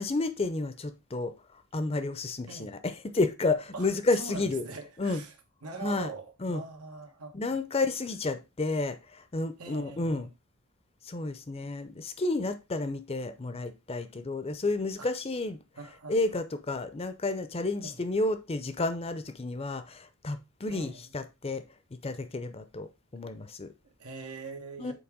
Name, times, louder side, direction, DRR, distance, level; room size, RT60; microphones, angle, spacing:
voice 1, 0.0-1.3 1.7-4.6 5.0-5.2 5.8-6.1 6.4-6.6 7.3-10.3 11.0-15.6 16.1-21.6 22.0-23.7 24.8-24.9, left 2 dB, 25° left, 0.6 m, -31 dB
voice 2, 4.2-5.3 5.6-7.6 9.6-10.3 15.0-15.1 15.8-16.2 17.8-18.0 20.7-21.1 23.8-24.9, right 3 dB, 90° right, 1.5 m, -43 dB
7.0 x 4.6 x 3.7 m
head